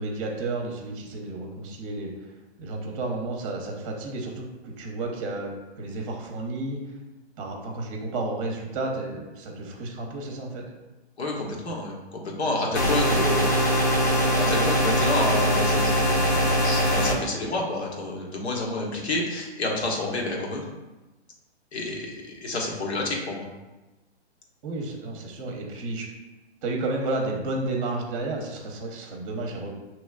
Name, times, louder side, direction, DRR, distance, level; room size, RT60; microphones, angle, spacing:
voice 1, 0.0-2.3 2.6-6.8 7.4-10.6 12.7-13.6 24.6-26.1 26.6-29.7, right 2 dB, 30° right, 1 dB, 0.8 m, -32 dB
voice 2, 11.2-13.5 14.4-20.6 21.7-23.5, left 2 dB, 75° left, -1 dB, 1.3 m, -29 dB
sound 1, 12.7-17.1, equal, 15° left, 0.3 m, -22 dB
6.1 x 3.0 x 2.4 m, 1.1 s
hypercardioid pair, 140°, 33 cm